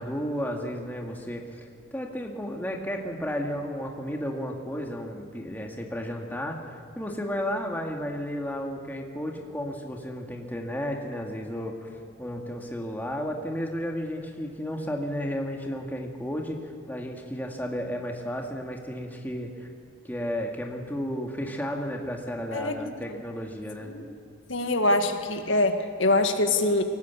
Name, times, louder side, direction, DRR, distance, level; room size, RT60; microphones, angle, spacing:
voice 1, 0.0-19.7 20.0-23.9, equal, 10° left, 1 dB, 2.0 m, -33 dB
voice 2, 24.5-26.8, left 2 dB, 75° left, 6 dB, 1.9 m, -24 dB
22.5 x 18.5 x 8.4 m, 2.5 s
head